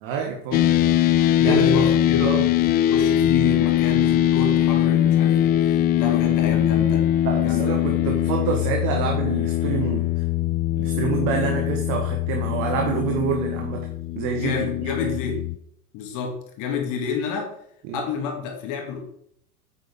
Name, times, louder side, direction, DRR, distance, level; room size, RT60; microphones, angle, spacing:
voice 1, 0.0-0.7 1.4-1.7 2.2-2.5 7.3-10.2 10.8-13.9 14.2-15.0 17.9-18.0, right 7 dB, 50° right, 3 dB, 1.7 m, -27 dB
sound 1, 0.5-15.6, left 12 dB, 25° left, 0.4 m, -21 dB
voice 2, 1.4-7.1 7.4-8.1 14.3-15.4 15.9-17.5 17.9-19.0, left 5 dB, 45° left, 1 dB, 2.5 m, -29 dB
9.3 x 9.0 x 3.8 m, 0.68 s
figure-of-eight pair, 75°, 43 cm